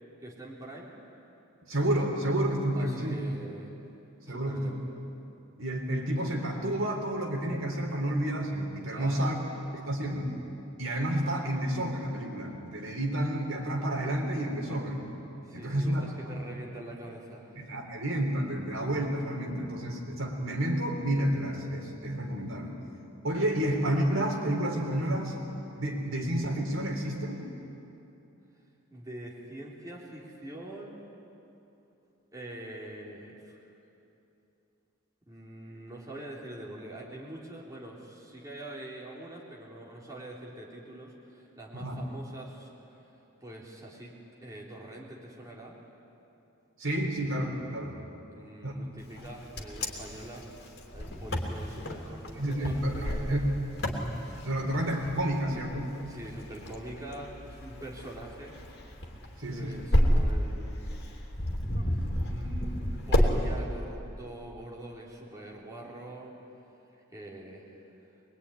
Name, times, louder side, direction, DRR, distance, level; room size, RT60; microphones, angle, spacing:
voice 1, 0.2-0.9 2.7-3.7 4.3-4.8 8.9-9.4 15.4-17.4 28.9-31.1 32.3-33.6 35.3-42.7 43.1-44.1 44.4-45.7 47.9-50.5 50.9-53.4 56.1-58.6 59.5-60.9 61.8-62.0 62.3-66.3 67.1-67.9, right 1 dB, 15° right, -4 dB, 3.6 m, -44 dB
voice 2, 1.7-3.2 4.3-4.8 5.6-9.4 9.7-10.4 10.8-15.1 15.5-16.4 17.6-22.8 23.2-25.3 25.7-27.5 41.7-42.0 46.8-48.0 48.6-48.7 52.4-53.5 54.0-55.9 59.4-59.8, right 1 dB, 65° right, 1 dB, 3.7 m, -30 dB
Wind, 49.2-63.3, equal, 50° left, 3.2 m, -31 dB
23.5 x 22.5 x 10.0 m, 2.9 s
head